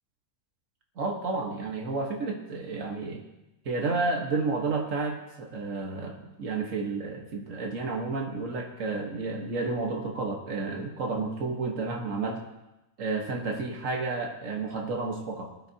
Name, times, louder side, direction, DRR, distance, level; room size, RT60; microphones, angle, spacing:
voice 1, 1.0-3.2 3.7-12.4 13.0-15.5, right 3 dB, 80° right, 1 dB, 1.8 m, -31 dB
19.5 x 12.0 x 2.9 m, 0.95 s
omnidirectional pair, 1.3 m